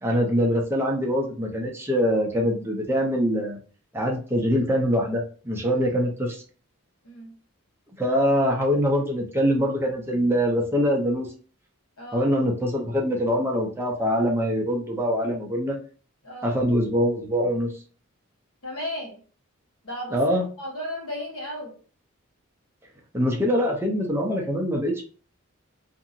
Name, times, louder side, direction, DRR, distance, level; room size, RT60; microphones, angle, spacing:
voice 1, 0.0-3.6 3.9-6.4 8.0-11.3 12.1-15.8 16.4-17.7 20.1-20.4 23.1-25.0, equal, 10° right, 0.5 m, -23 dB
voice 2, 12.0-12.3 16.2-16.6 18.6-19.2 19.8-20.2 20.6-21.8, left 1 dB, 90° left, 1.1 m, -35 dB
2.8 x 2.6 x 2.6 m
head